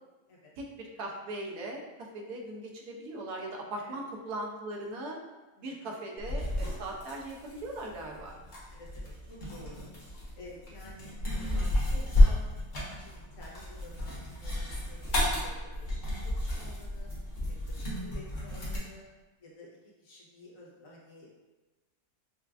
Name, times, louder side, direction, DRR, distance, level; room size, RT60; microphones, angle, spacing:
voice 1, 0.6-1.8 2.1-5.2 5.6-8.3, right 1 dB, 90° right, 0 dB, 1.2 m, -39 dB
voice 2, 5.6-6.0 8.7-9.9 10.4-12.6 13.0-15.5 15.8-17.1 17.7-19.0 19.4-21.3, left 1 dB, 65° left, -5 dB, 1.2 m, -51 dB
sound 1, 6.2-18.8, left 1 dB, 35° left, 0.9 m, -31 dB
5.6 x 2.3 x 2.4 m, 1.2 s
omnidirectional pair, 1.6 m